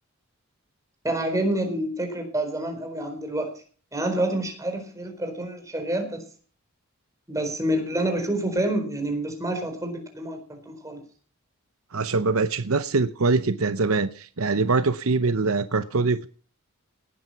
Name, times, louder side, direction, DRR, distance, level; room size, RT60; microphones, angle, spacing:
voice 1, 1.0-3.5 3.9-6.2 7.3-11.0, right 1 dB, 15° right, 4 dB, 4.4 m, -28 dB
voice 2, 11.9-16.3, right 3 dB, 75° right, 12 dB, 0.8 m, -23 dB
18.5 x 9.3 x 5.7 m, 0.41 s
head